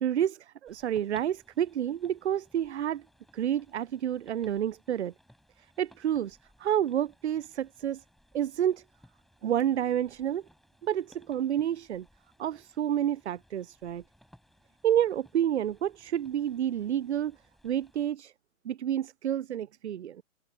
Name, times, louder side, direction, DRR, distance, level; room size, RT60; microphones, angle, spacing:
voice 1, 0.0-3.0 3.3-5.1 5.8-8.0 8.3-8.8 9.4-10.4 10.8-12.1 12.4-14.0 14.8-17.4 17.6-18.3 18.6-20.2, right 10 dB, 55° right, 0.5 m, -29 dB
sound 1, 0.7-18.1, equal, ahead, 6.6 m, -63 dB
open air
figure-of-eight pair, 140°, 40 cm